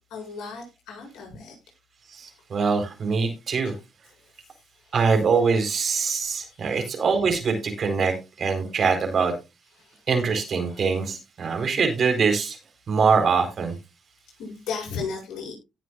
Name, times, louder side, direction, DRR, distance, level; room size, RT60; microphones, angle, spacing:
voice 1, 0.1-1.6 3.6-3.8 6.6-6.9 9.8-10.0 10.7-10.8 14.4-15.5, left 5 dB, 80° left, 0 dB, 7.7 m, -35 dB
voice 2, 2.1-3.7 4.9-9.3 10.1-12.6 12.9-13.7, right 5 dB, 55° right, 5 dB, 4.3 m, -23 dB
17.5 x 7.8 x 2.5 m, 0.26 s
supercardioid pair, 65°, 0 cm